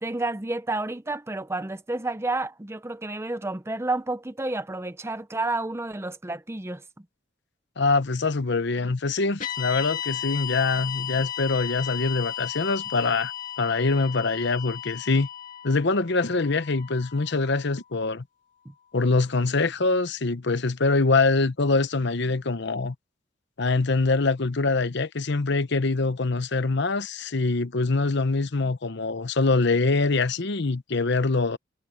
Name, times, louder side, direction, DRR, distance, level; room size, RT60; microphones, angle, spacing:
voice 1, 0.0-6.8 18.7-18.8, right 2 dB, 15° right, 0.6 m, -30 dB
voice 2, 7.8-13.3 13.6-15.3 15.6-18.2 18.9-22.9 23.6-31.6, left 3 dB, 60° left, 0.9 m, -24 dB
sound 1, 9.4-17.7, left 11 dB, 40° left, 2.9 m, -35 dB
head